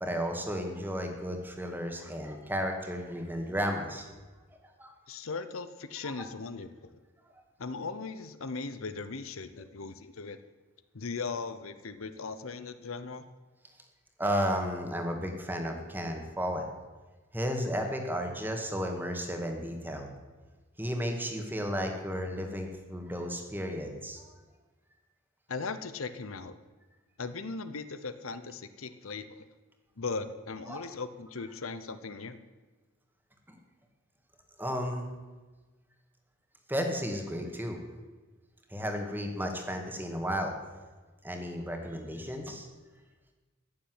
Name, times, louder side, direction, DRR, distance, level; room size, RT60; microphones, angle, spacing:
voice 1, 0.0-4.1 4.8-4.9 6.0-6.1 14.2-16.7 17.3-20.1 20.8-24.2 30.7-30.8 33.5-33.6 34.6-35.0 36.7-37.8 38.7-40.5 41.2-42.7, equal, 10° right, 3 dB, 1.9 m, -33 dB
voice 2, 5.1-6.9 7.6-10.4 10.9-13.2 25.5-26.6 27.2-29.5 30.0-32.4, left 4 dB, 80° left, 12 dB, 0.9 m, -38 dB
15.5 x 7.1 x 9.5 m, 1.3 s
head